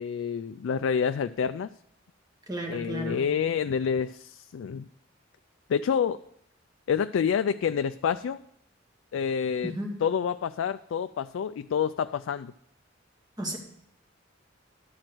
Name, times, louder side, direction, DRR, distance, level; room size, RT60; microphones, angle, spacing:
voice 1, 0.0-1.7 2.7-4.9 5.7-6.2 6.9-8.4 9.1-9.7 10.0-12.5, left 7 dB, 85° left, 11 dB, 0.3 m, -28 dB
voice 2, 2.5-3.2 9.6-10.0 13.4-13.6, right 1 dB, 20° right, 0 dB, 1.9 m, -33 dB
11.5 x 4.5 x 7.8 m, 0.75 s
head